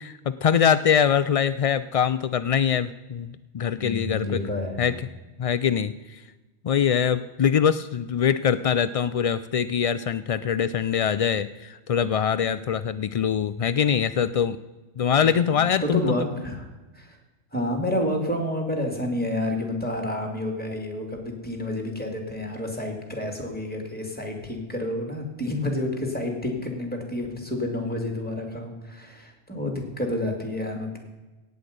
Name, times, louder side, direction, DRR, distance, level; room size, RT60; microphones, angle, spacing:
voice 1, 0.0-4.5 4.8-5.0 5.4-6.2 6.6-14.6 15.0-16.0, left 7 dB, 65° left, 13 dB, 0.3 m, -23 dB
voice 2, 3.7-5.0 15.8-16.6 16.9-17.2 17.5-31.0, left 1 dB, 10° left, 3 dB, 2.6 m, -29 dB
18.0 x 8.0 x 5.2 m, 1.2 s
omnidirectional pair, 1.1 m